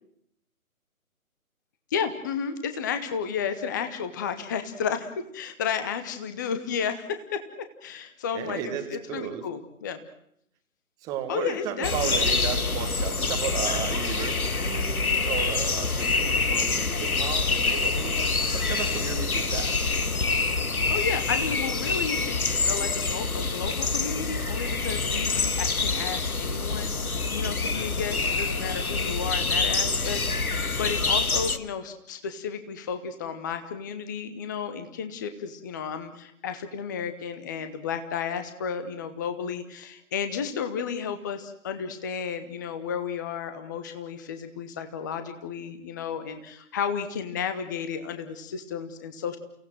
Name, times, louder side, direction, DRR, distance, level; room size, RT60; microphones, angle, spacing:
voice 1, 1.9-10.0 11.3-12.2 12.5-12.7 20.9-49.4, left 6 dB, 15° left, 9 dB, 0.9 m, -33 dB
voice 2, 8.3-9.4 11.0-18.1 18.5-19.8, right 9 dB, 10° right, 8 dB, 1.3 m, -34 dB
sound 1, 11.8-31.6, left 4 dB, 75° left, 1.8 m, -26 dB
29.5 x 17.5 x 7.6 m, 0.73 s
figure-of-eight pair, 145°, 43 cm